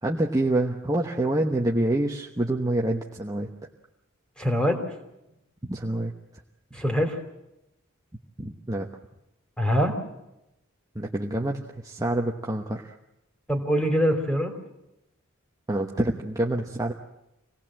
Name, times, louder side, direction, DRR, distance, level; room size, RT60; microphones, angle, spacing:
voice 1, 0.0-3.5 5.6-6.1 8.4-8.9 10.9-12.9 15.7-16.9, right 1 dB, 15° right, 0 dB, 1.1 m, -26 dB
voice 2, 4.4-4.8 6.7-7.2 9.6-10.0 13.5-14.5, equal, 5° left, 4 dB, 3.1 m, -23 dB
26.0 x 18.5 x 7.6 m, 0.88 s
head